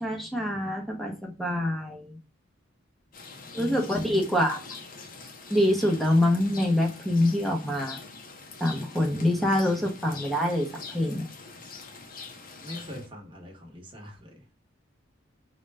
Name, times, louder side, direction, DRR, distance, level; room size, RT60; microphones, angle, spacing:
voice 1, 0.0-2.2 3.5-4.6 5.5-8.0 8.6-11.3, left 1 dB, ahead, 1 dB, 0.7 m, -25 dB
Rain, 3.1-13.1, left 4 dB, 45° left, 0.6 m, -44 dB
voice 2, 12.6-14.4, left 1 dB, 25° right, 0 dB, 1.0 m, -44 dB
3.8 x 2.2 x 3.3 m, 0.31 s
head